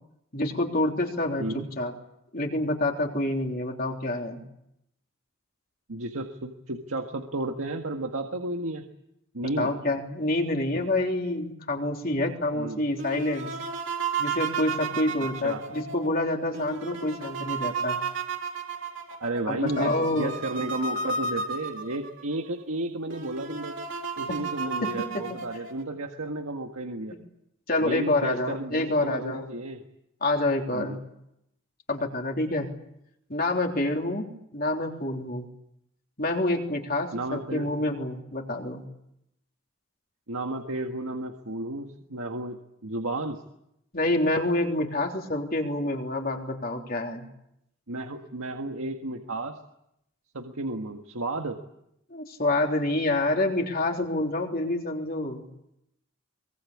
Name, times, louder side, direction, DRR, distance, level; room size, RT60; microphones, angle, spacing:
voice 1, 0.3-1.9 2.3-4.4 9.4-13.5 14.2-18.0 19.5-20.3 24.3-24.4 24.8-25.4 27.7-29.4 30.2-31.0 31.9-32.7 33.3-34.3 34.5-35.5 36.2-38.8 43.9-47.3 52.1-55.5, left 2 dB, 45° left, 2 dB, 3.5 m, -27 dB
voice 2, 5.9-8.8 9.3-9.7 12.5-12.8 15.4-15.6 16.9-17.0 19.2-23.8 24.2-27.2 27.8-29.8 30.7-31.0 37.1-37.7 40.3-43.4 47.9-49.6 50.3-51.6, right 2 dB, 85° right, 4 dB, 1.7 m, -33 dB
sound 1, 13.0-22.2 22.7-22.8 23.1-25.8, right 4 dB, 65° right, 3.7 m, -33 dB
23.5 x 22.5 x 8.6 m, 0.81 s
head